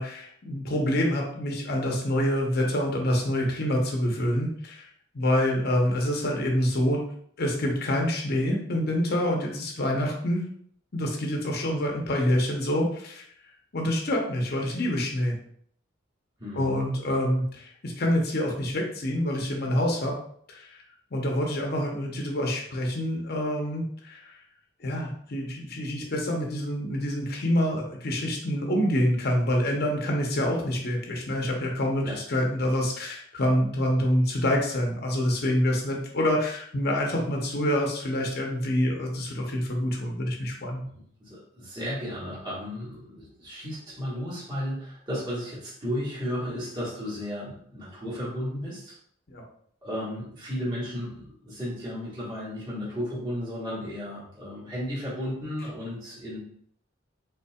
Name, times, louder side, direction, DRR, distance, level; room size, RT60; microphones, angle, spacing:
voice 1, 0.0-4.9 5.1-7.0 7.4-10.4 10.9-13.2 13.7-15.4 16.5-20.2 20.5-20.8 21.1-24.4 24.8-40.8 49.3-49.4, left 1 dB, 55° left, 1 dB, 0.8 m, -26 dB
voice 2, 16.4-16.8 32.0-32.2 40.9-48.9 49.8-56.4, equal, 25° right, -9 dB, 1.8 m, -34 dB
5.6 x 3.7 x 2.4 m, 0.63 s
head